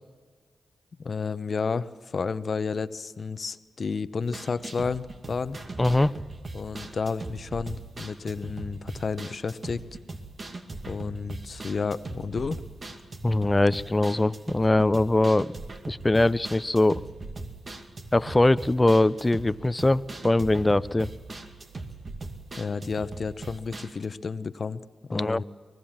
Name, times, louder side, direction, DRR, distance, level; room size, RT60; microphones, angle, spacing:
voice 1, 1.0-5.6 6.5-9.8 10.9-12.6 22.6-24.8 25.1-25.4, left 5 dB, 60° left, 14 dB, 0.9 m, -31 dB
sound 1, 4.2-24.0, right 2 dB, 50° right, 2.3 m, -40 dB
voice 2, 5.8-6.1 13.2-15.5 15.9-17.0 18.1-21.1 25.1-25.4, left 2 dB, 20° left, 17 dB, 0.7 m, -22 dB
24.5 x 19.0 x 7.4 m, 1.5 s
supercardioid pair, 40°, 0 cm